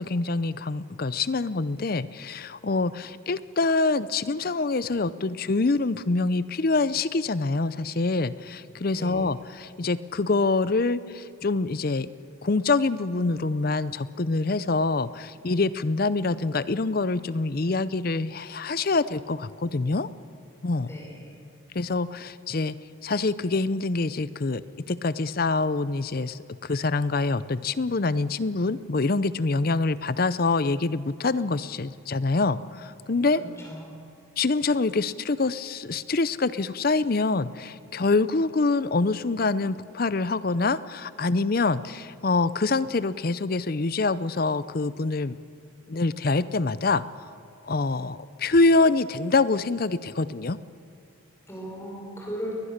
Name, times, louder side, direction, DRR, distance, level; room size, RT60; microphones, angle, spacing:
voice 1, 0.0-12.1 12.4-20.1 20.6-20.9 21.7-22.8 23.0-24.6 24.9-33.4 34.4-45.4 45.9-47.0 47.6-50.6, left 3 dB, 45° left, 16 dB, 0.6 m, -25 dB
voice 2, 20.9-21.4 33.3-33.9 51.5-52.6, equal, 15° left, -1 dB, 4.9 m, -37 dB
21.5 x 20.0 x 6.6 m, 2.6 s
head